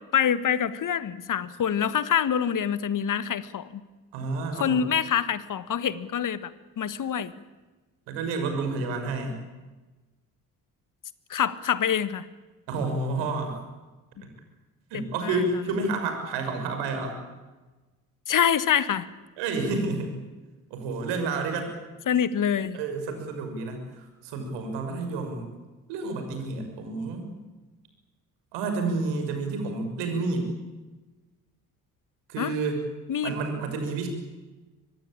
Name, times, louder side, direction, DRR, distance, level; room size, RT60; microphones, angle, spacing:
voice 1, 0.1-3.8 4.6-6.5 6.8-7.3 11.3-12.3 15.2-15.4 18.3-19.1 22.1-22.8 32.4-32.5 33.1-33.3, left 8 dB, 45° left, 15 dB, 1.8 m, -25 dB
voice 2, 4.1-4.9 8.1-9.4 12.7-13.6 14.2-14.3 14.9-17.2 19.4-20.1 20.7-21.7 22.7-25.5 25.9-27.3 28.5-30.5 32.3-32.8 33.2-34.1, right 3 dB, 70° right, 6 dB, 6.1 m, -30 dB
24.5 x 20.5 x 8.8 m, 1.2 s
figure-of-eight pair, 45°, 44 cm